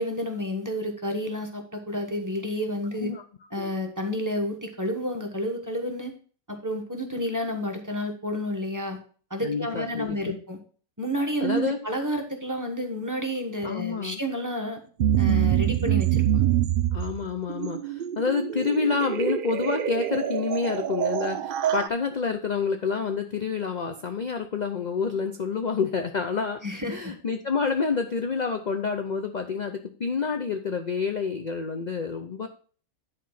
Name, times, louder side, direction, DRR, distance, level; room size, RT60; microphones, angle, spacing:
voice 1, 0.0-3.1 3.5-6.1 6.5-9.0 9.3-10.6 11.0-14.8 15.2-16.5 26.6-27.1, equal, 15° right, 2 dB, 1.1 m, -30 dB
voice 2, 9.4-10.4 11.4-11.8 13.6-14.2 16.9-26.6 26.9-32.5, left 5 dB, 45° left, 6 dB, 0.6 m, -28 dB
sound 1, 15.0-21.9, right 10 dB, 65° right, 0.5 m, -25 dB
10.5 x 4.1 x 5.7 m, 0.42 s
omnidirectional pair, 1.5 m